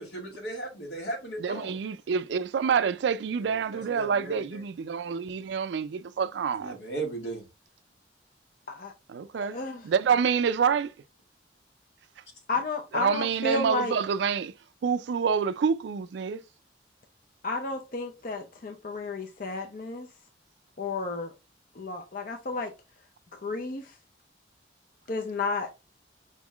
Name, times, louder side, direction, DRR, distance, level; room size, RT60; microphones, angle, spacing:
voice 1, 0.0-1.8 3.4-4.6 6.6-7.4, right 2 dB, 75° left, 1.8 m, -37 dB
voice 2, 1.4-6.8 9.1-9.6 9.8-10.9 12.9-14.5 14.8-16.4, right 6 dB, 75° right, 0.3 m, -27 dB
voice 3, 9.4-9.8 12.5-14.0 17.4-20.1 20.8-21.3 21.8-22.7 23.4-23.9 25.1-25.7, left 3 dB, 50° left, 0.5 m, -32 dB
5.2 x 3.6 x 2.3 m
head